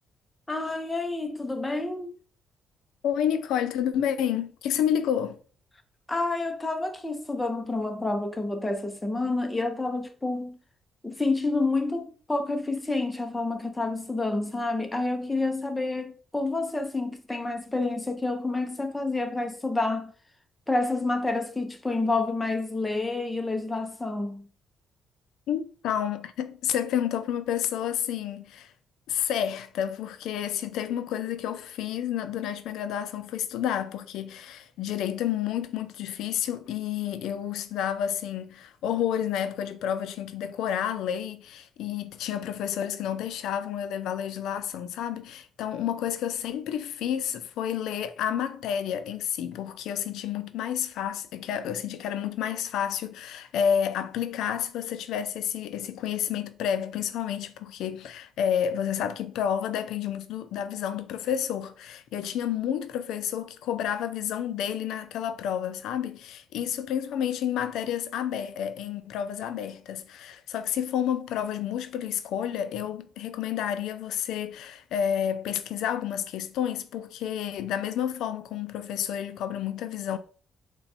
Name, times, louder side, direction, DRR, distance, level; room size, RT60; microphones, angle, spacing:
voice 1, 0.5-2.1 6.1-10.6 11.0-20.1 20.7-24.5, left 2 dB, 15° left, 0.7 m, -29 dB
voice 2, 3.0-5.4 25.5-28.7 29.1-80.2, left 9 dB, 85° left, 0.4 m, -30 dB
4.0 x 2.3 x 4.1 m
cardioid pair, 90°, 0 cm